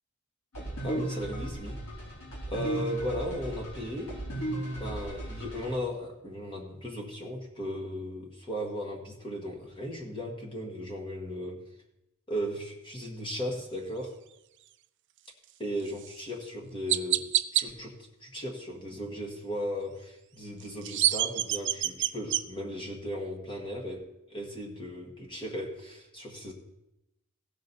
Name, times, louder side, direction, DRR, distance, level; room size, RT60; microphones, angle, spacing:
sound 1, 0.5-5.8, right 1 dB, 80° left, 3.7 m, -36 dB
voice 1, 0.8-1.8 2.5-4.2 4.8-11.6 12.3-14.2 15.6-17.2 17.5-26.5, equal, 25° left, -1 dB, 1.6 m, -36 dB
Chirp tweet, 16.0-16.1 16.9-17.7 20.6-22.4, right 13 dB, 55° right, 0.4 m, -26 dB
16.5 x 6.3 x 4.1 m, 0.87 s
head